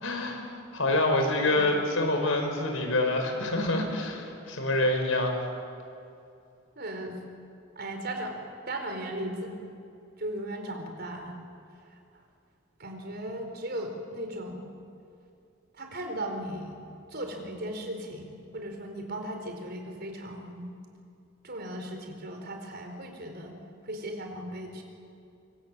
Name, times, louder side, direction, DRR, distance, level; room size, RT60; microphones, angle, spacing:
voice 1, 0.0-5.5, left 2 dB, 80° left, 4 dB, 5.2 m, -27 dB
voice 2, 1.3-1.7 6.8-7.2 7.8-8.4 8.7-9.6 10.2-11.4 11.9-12.0 12.8-14.6 15.7-16.8 17.1-20.7 21.4-23.6 23.8-24.8, right 1 dB, 55° right, 4 dB, 4.4 m, -37 dB
25.5 x 23.5 x 8.5 m, 2.6 s
head